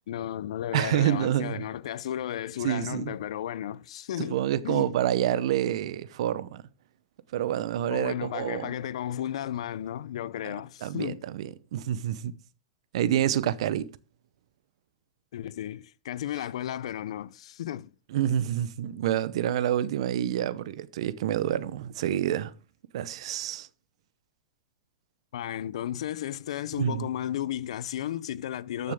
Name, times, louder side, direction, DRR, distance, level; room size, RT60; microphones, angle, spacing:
voice 1, 0.1-4.9 7.9-11.2 15.3-17.9 25.3-28.9, left 11 dB, 75° left, 0.6 m, -34 dB
voice 2, 0.7-1.7 2.6-3.1 4.2-6.6 7.3-8.7 10.8-12.3 12.9-13.9 18.1-22.5 22.9-23.7 26.8-27.1 28.8-28.9, right 11 dB, 65° right, 0.8 m, -28 dB
13.0 x 6.8 x 3.6 m
supercardioid pair, 145°, 3 cm